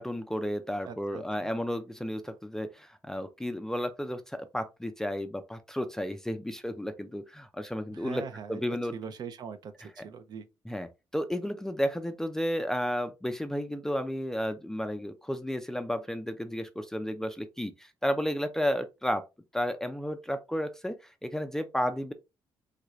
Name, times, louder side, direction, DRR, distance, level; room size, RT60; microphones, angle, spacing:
voice 1, 0.0-8.9 10.7-10.9 11.1-19.2 19.5-22.1, equal, 5° left, 0.4 m, -32 dB
voice 2, 0.8-1.5 7.9-8.6 8.9-10.5, right 6 dB, 50° right, 0.5 m, -42 dB
3.2 x 2.5 x 2.9 m
cardioid pair, 120°, 9 cm